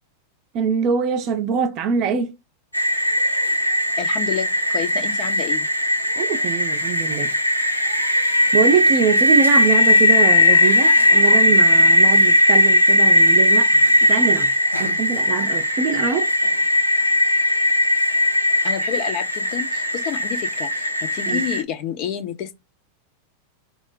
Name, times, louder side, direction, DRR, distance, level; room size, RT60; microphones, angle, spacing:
voice 1, 0.5-2.3 6.2-7.3 8.5-13.7 14.0-14.5 14.8-16.3 21.3-21.4, right 6 dB, 40° right, 0.5 m, -23 dB
sound 1, 2.7-21.6, left 1 dB, 90° left, 0.5 m, -18 dB
voice 2, 4.0-5.7 18.6-22.6, left 8 dB, 45° left, 0.7 m, -29 dB
2.4 x 2.1 x 3.9 m
figure-of-eight pair, 90°, 0 cm